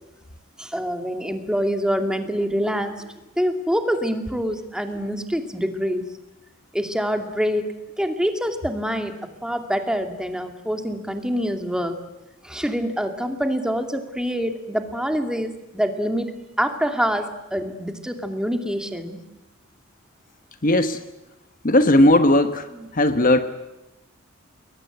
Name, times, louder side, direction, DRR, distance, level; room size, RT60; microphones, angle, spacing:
voice 1, 0.6-3.1 3.4-6.0 6.7-12.0 12.4-19.2 22.7-22.9, equal, 5° right, 6 dB, 2.5 m, -26 dB
voice 2, 20.6-21.0 21.6-22.7 22.9-23.4, left 1 dB, 40° left, 9 dB, 1.3 m, -16 dB
29.5 x 22.0 x 8.1 m, 1.0 s
head